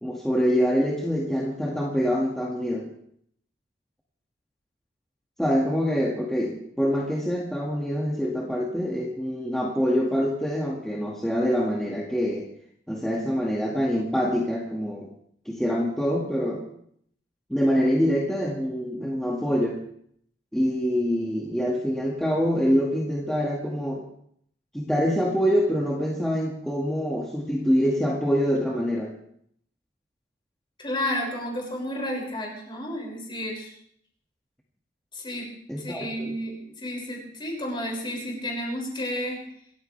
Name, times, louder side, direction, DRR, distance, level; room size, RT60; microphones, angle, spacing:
voice 1, 0.0-2.9 5.4-12.5 12.9-15.1 15.5-16.6 17.5-19.8 20.5-24.0 24.7-29.1 35.7-36.3, equal, 5° left, -3 dB, 2.0 m, -25 dB
voice 2, 30.8-33.7 35.1-39.4, left 1 dB, 25° left, -1 dB, 6.2 m, -32 dB
26.5 x 14.5 x 3.4 m, 0.66 s
head